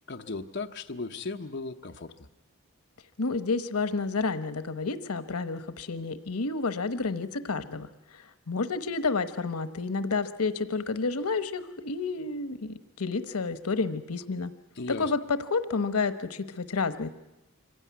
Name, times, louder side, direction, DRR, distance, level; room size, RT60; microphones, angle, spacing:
voice 1, 0.1-2.1 14.8-15.1, left 3 dB, 50° left, 4 dB, 0.9 m, -36 dB
voice 2, 3.2-7.9 8.1-14.5 15.0-17.1, left 4 dB, 90° left, 12 dB, 1.0 m, -30 dB
25.0 x 16.0 x 9.5 m, 0.98 s
head